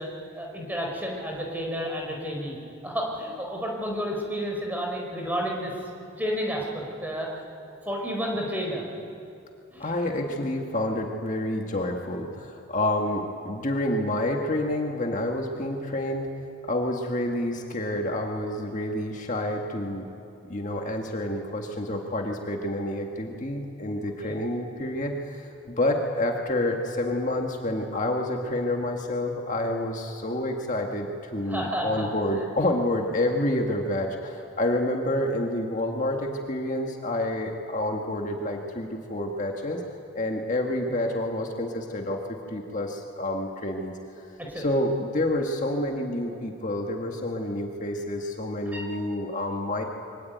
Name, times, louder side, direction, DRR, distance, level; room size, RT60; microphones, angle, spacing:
voice 1, 0.0-2.6 2.8-5.7 6.2-7.3 7.7-8.9 9.7-9.9 24.2-24.4 31.5-32.0 44.4-44.7 48.7-48.9, equal, 10° right, -1 dB, 4.7 m, -31 dB
voice 2, 9.8-16.3 16.6-20.1 20.4-39.8 40.2-43.9 44.5-49.8, left 1 dB, 35° left, 2 dB, 1.8 m, -28 dB
25.5 x 24.5 x 9.4 m, 2.7 s
head